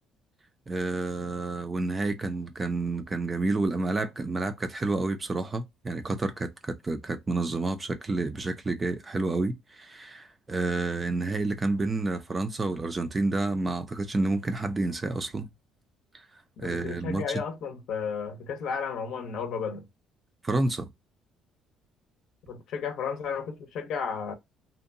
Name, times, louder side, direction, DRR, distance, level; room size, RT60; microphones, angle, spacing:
voice 1, 0.7-15.5 16.6-17.4 20.4-20.9, right 2 dB, 20° right, 0.4 m, -29 dB
voice 2, 16.6-19.8 22.5-24.3, left 6 dB, 65° left, 0.7 m, -33 dB
2.7 x 2.2 x 2.5 m
cardioid pair, 125°, 0 cm